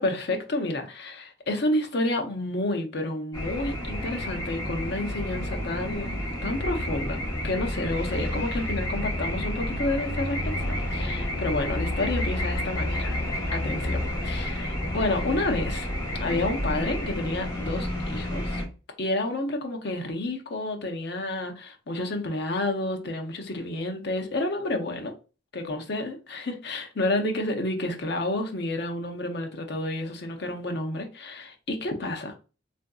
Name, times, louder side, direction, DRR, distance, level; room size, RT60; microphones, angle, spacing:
voice 1, 0.0-13.2 13.5-15.9 16.2-18.6 19.0-25.1 25.5-32.3, left 2 dB, 55° left, 0.6 m, -30 dB
sound 1, 3.3-18.6, left 1 dB, 20° left, 1.0 m, -30 dB
3.5 x 2.5 x 2.3 m
head